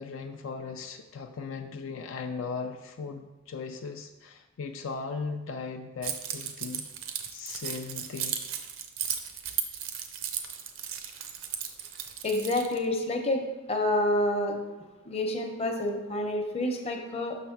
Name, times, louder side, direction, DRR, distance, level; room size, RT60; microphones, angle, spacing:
voice 1, 0.0-6.9 7.3-8.4, left 4 dB, 75° left, 5 dB, 0.4 m, -38 dB
Keys jangling, 6.0-12.8, right 8 dB, 85° right, 0.6 m, -35 dB
voice 2, 12.2-13.4 13.7-14.6 15.1-17.4, left 1 dB, 30° left, 3 dB, 0.7 m, -28 dB
6.0 x 3.3 x 5.8 m, 1.1 s
head